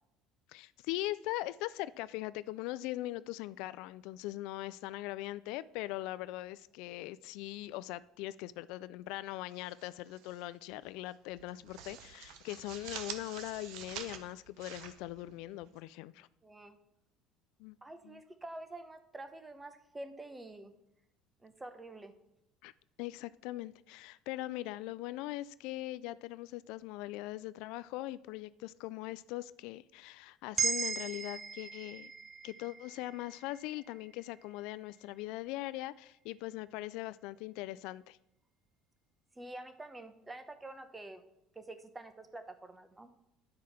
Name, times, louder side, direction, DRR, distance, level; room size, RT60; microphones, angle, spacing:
voice 1, 0.5-16.3 17.6-17.8 18.0-18.2 22.6-22.7 23.0-32.1 32.4-38.2, left 17 dB, 75° left, 0.3 m, -41 dB
sound 1, 9.5-10.4 10.7-10.9 11.3-15.8, right 8 dB, 70° right, 1.0 m, -47 dB
voice 2, 16.4-16.8 17.8-20.7 21.4-22.1 39.3-41.2 41.5-43.1, right 2 dB, 10° right, 0.9 m, -47 dB
sound 2, 30.6-34.8, right 5 dB, 30° right, 0.5 m, -38 dB
10.5 x 4.9 x 5.8 m
cardioid pair, 135°, 0 cm